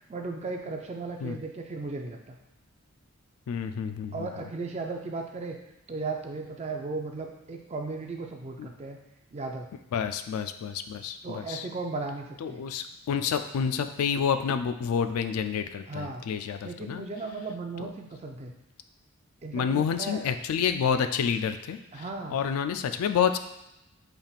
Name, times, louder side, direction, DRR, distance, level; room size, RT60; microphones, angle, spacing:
voice 1, 0.1-2.4 4.1-5.6 5.9-9.0 9.3-9.7 11.2-12.6 15.9-16.3 16.6-18.5 19.4-20.2 21.9-22.4, right 3 dB, 30° right, 3 dB, 0.4 m, -36 dB
voice 2, 3.5-4.3 8.6-8.7 9.9-11.7 12.4-17.0 17.8-17.9 19.5-22.0 22.3-23.4, left 7 dB, 75° left, 9 dB, 0.3 m, -29 dB
5.6 x 3.4 x 2.4 m, 0.87 s
head